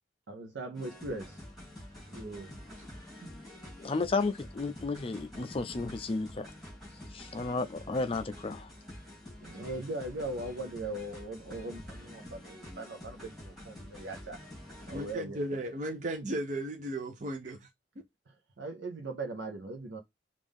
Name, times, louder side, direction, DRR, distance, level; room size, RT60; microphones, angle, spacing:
voice 1, 0.3-1.4 9.4-14.4 14.9-15.4 18.6-20.0, right 2 dB, 80° right, 0.6 m, -39 dB
sound 1, 0.7-15.1, left 1 dB, ahead, 2.7 m, -48 dB
voice 2, 2.1-2.6 9.5-9.7 14.9-17.7, right 1 dB, 40° right, 0.6 m, -36 dB
voice 3, 3.8-6.5 7.1-8.7, left 3 dB, 30° left, 0.4 m, -33 dB
5.3 x 2.5 x 3.5 m
head